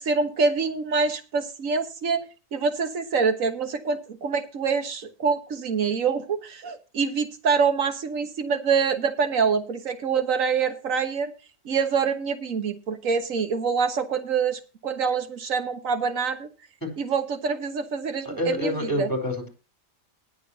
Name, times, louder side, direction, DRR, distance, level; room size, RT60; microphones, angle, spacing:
voice 1, 0.0-2.2 2.5-11.3 11.7-16.5 17.0-18.7 19.0-19.1, right 5 dB, 85° right, 8 dB, 1.7 m, -25 dB
voice 2, 18.2-19.5, left 1 dB, 15° left, 5 dB, 4.4 m, -27 dB
20.5 x 6.8 x 2.9 m, 0.33 s
omnidirectional pair, 1.3 m